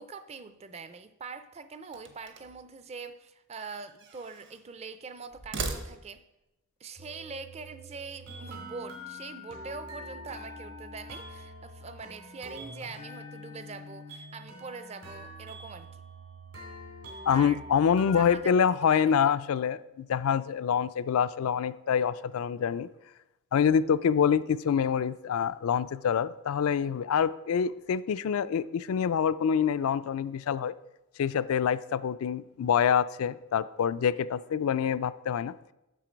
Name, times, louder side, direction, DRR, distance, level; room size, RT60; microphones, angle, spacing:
voice 1, 0.0-6.2 6.8-16.0 17.3-17.6 18.0-19.3, right 4 dB, 30° right, 11 dB, 0.4 m, -43 dB
sound 1, 1.9-2.7 3.6-4.7 5.3-6.4, right 3 dB, 55° right, 0.9 m, -39 dB
sound 2, 7.0-18.4, equal, 75° right, 2.8 m, -45 dB
voice 2, 17.3-22.9 23.5-30.7 31.2-35.5, left 7 dB, 70° left, 16 dB, 0.3 m, -26 dB
7.5 x 6.6 x 5.1 m, 0.93 s
head